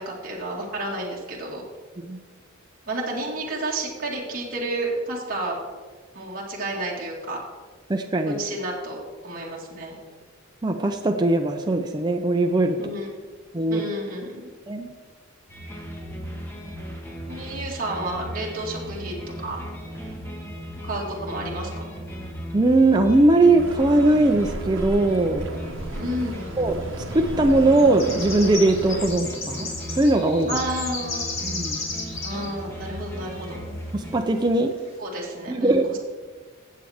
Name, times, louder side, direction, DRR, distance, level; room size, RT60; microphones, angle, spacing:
voice 1, 0.0-1.7 2.9-5.6 6.1-7.4 8.3-10.0 12.8-13.1 13.7-14.5 17.3-19.6 20.8-21.9 26.0-26.4 30.5-31.2 32.2-33.6 35.0-36.0, right 1 dB, 40° right, -4 dB, 2.0 m, -31 dB
voice 2, 7.9-8.4 10.6-12.9 13.5-13.8 14.7-14.9 22.5-25.5 26.6-29.7 30.0-30.6 31.4-31.8 33.9-34.8 35.5-35.9, right 2 dB, 20° right, 4 dB, 0.5 m, -20 dB
sound 1, 15.5-34.2, equal, 10° left, 1.5 m, -36 dB
sound 2, 23.6-29.1, right 1 dB, 65° right, 1.1 m, -35 dB
sound 3, 26.1-26.2 27.0-27.2 27.5-32.5 32.7-32.8 33.3-33.4 34.1-34.2 34.7-34.9, left 3 dB, 70° left, 2.7 m, -33 dB
15.5 x 7.6 x 3.5 m, 1.4 s
head